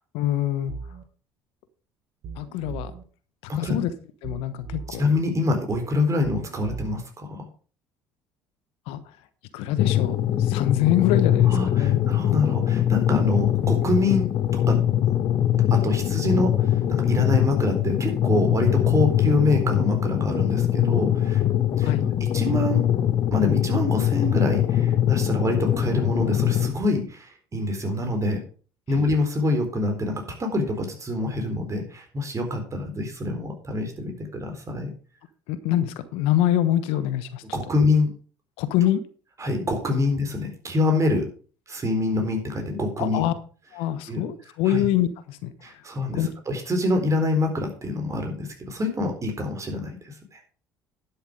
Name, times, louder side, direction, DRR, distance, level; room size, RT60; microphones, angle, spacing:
voice 1, 0.1-0.8 2.4-2.9 3.5-3.9 4.2-5.0 8.9-9.0 9.5-12.0 21.8-22.1 28.9-29.0 35.5-37.4 38.6-39.0 43.0-43.3 43.7-45.5 46.1-46.3, left 12 dB, 70° left, 14 dB, 1.1 m, -25 dB
sound 1, 0.7-1.0 2.2-3.0 4.2-5.0 6.2-7.0, right 5 dB, 55° right, 1.7 m, -38 dB
voice 2, 4.9-7.4 11.5-14.3 14.5-14.8 15.7-21.4 21.8-21.9 22.2-22.8 23.3-28.4 28.9-34.9 37.5-38.1 39.4-41.3 41.7-43.3 44.1-44.2 44.7-44.8 45.6-50.4, left 2 dB, 30° right, 4 dB, 4.0 m, -26 dB
sound 2, 9.8-26.7, left 11 dB, 50° left, 1.2 m, -22 dB
11.0 x 7.1 x 5.0 m, 0.39 s
hypercardioid pair, 65°, 10 cm